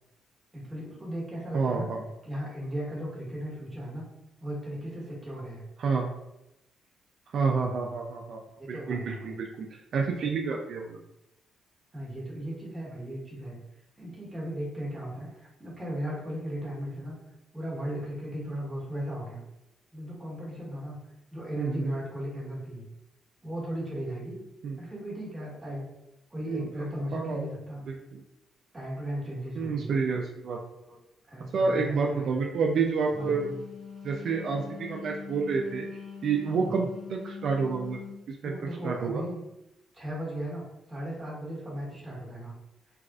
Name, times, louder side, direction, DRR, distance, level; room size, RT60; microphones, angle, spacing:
voice 1, 0.5-1.9 2.2-4.0 4.4-5.6 8.6-9.4 11.9-13.6 14.0-17.2 17.5-19.4 19.9-21.0 21.3-22.8 23.4-24.4 24.8-25.9 26.3-27.8 28.7-30.0 30.9-31.0 31.3-32.5 33.2-33.5 36.6-36.9 38.4-39.4 39.9-42.5, equal, 15° right, -5 dB, 1.4 m, -36 dB
voice 2, 1.5-2.0 5.8-6.1 7.3-8.4 8.7-9.7 9.9-11.0 21.6-21.9 24.6-24.8 26.4-26.8 27.1-27.5 27.8-28.2 29.6-30.6 31.5-33.5 34.0-38.0 38.3-38.6 38.8-39.2, right 4 dB, 65° right, 0 dB, 0.3 m, -29 dB
Wind instrument woodwind instrument, 32.9-38.2, left 6 dB, 60° left, 1.1 m, -43 dB
3.4 x 2.4 x 2.4 m, 0.89 s
cardioid pair, 90°, 0 cm